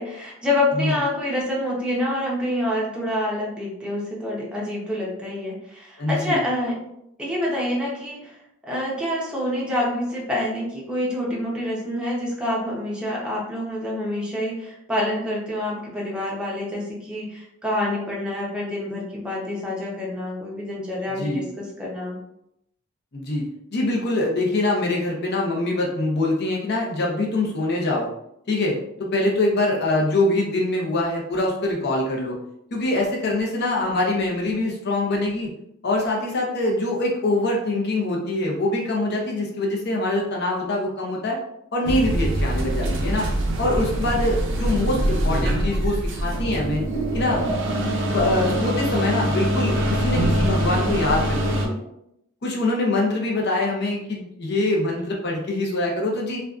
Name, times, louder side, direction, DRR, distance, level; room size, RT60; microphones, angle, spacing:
voice 1, 0.0-6.8 7.2-8.4 8.6-22.2, left 1 dB, 5° right, -5 dB, 0.6 m, -27 dB
voice 2, 6.0-6.4 21.2-21.4 23.1-23.4 23.7-28.1 28.5-32.4 32.7-35.5 35.8-41.4 41.7-43.3 43.6-46.8 47.1-47.4 48.1-51.8 52.4-56.4, left 2 dB, 55° left, -1 dB, 0.6 m, -24 dB
sound 1, 41.9-51.7, right 1 dB, 60° right, 0.4 m, -23 dB
2.5 x 2.2 x 2.3 m, 0.78 s
head